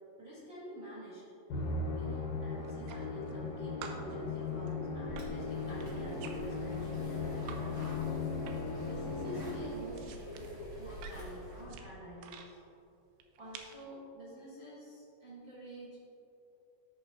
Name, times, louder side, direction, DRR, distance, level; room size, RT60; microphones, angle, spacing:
voice 1, 0.2-1.2 1.9-7.9 8.8-12.6 13.4-16.0, equal, 65° right, -9 dB, 1.2 m, -48 dB
Musical instrument, 1.5-10.0, left 3 dB, 80° left, 1.7 m, -37 dB
sound 1, 2.6-3.5 3.8-7.6 7.9-8.8 9.1-12.5 13.2-13.8, right 7 dB, 85° right, 2.6 m, -51 dB
sound 2, 5.1-11.7, equal, 45° right, 0.8 m, -48 dB
13.0 x 5.6 x 2.9 m, 2.6 s
omnidirectional pair, 4.9 m